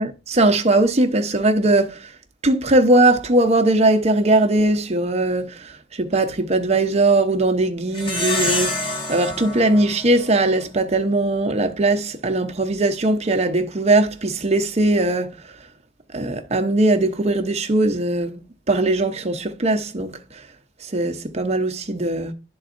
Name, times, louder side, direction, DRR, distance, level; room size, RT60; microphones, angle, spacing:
voice 1, 0.0-2.1 2.4-15.3 16.1-20.2 20.8-22.3, right 2 dB, 35° right, 0.8 m, -20 dB
Plucked string instrument, 7.9-10.8, left 1 dB, 30° left, 1.3 m, -27 dB
11.0 x 3.9 x 2.6 m
head